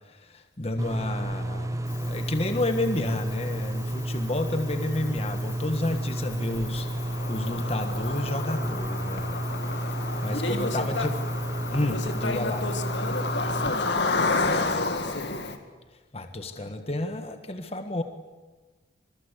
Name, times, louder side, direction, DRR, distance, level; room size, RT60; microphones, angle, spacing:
voice 1, 0.1-9.5 10.2-11.1 11.7-12.6 16.1-18.0, left 1 dB, 35° left, 7 dB, 1.5 m, -31 dB
sound 1, 0.8-13.7, right 1 dB, 15° right, 0.8 m, -31 dB
Cricket, 1.9-15.6, left 3 dB, 70° left, 2.3 m, -32 dB
voice 2, 10.3-11.1 11.8-15.4, left 2 dB, 85° left, 6 dB, 2.7 m, -34 dB
24.5 x 22.5 x 8.2 m, 1.2 s
head